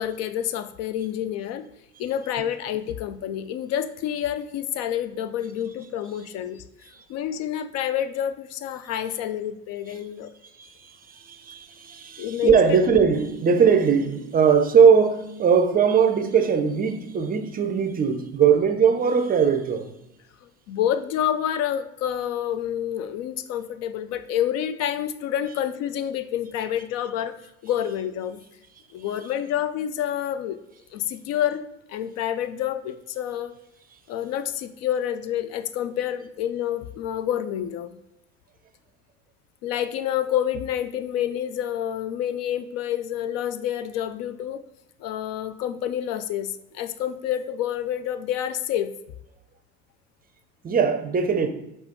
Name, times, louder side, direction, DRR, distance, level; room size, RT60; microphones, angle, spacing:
voice 1, 0.0-1.7 2.0-6.6 7.1-10.3 12.2-12.8 20.4-27.4 27.6-28.4 28.9-30.6 30.9-31.6 31.9-33.6 34.1-38.0 39.6-44.6 45.0-48.9, left 10 dB, 50° left, 0.4 m, -28 dB
voice 2, 10.5-19.9 50.6-51.5, right 6 dB, 25° right, 0.5 m, -20 dB
5.0 x 2.4 x 3.7 m
hypercardioid pair, 70°, 33 cm